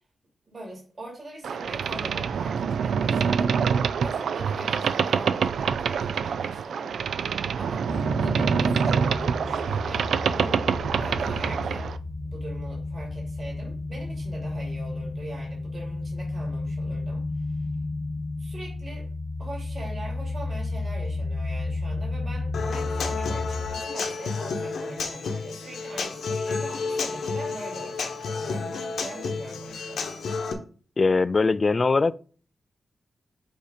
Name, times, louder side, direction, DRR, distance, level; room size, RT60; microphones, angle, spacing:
voice 1, 0.5-3.5 4.0-6.9 7.6-10.6 11.0-11.9 12.2-17.7 18.4-19.1 19.4-30.0, right 1 dB, 35° right, 3.0 m, -42 dB
Boat Water vehicle, 1.4-12.0, right 6 dB, 85° right, 0.3 m, -26 dB
sound 1, 7.9-23.7, left 2 dB, 10° left, 0.7 m, -32 dB
Human voice / Acoustic guitar, 22.5-30.5, left 4 dB, 80° left, 1.0 m, -31 dB
voice 2, 31.0-32.1, left 3 dB, 35° left, 0.3 m, -21 dB
8.1 x 2.8 x 5.0 m
wide cardioid pair, 110°, 0 cm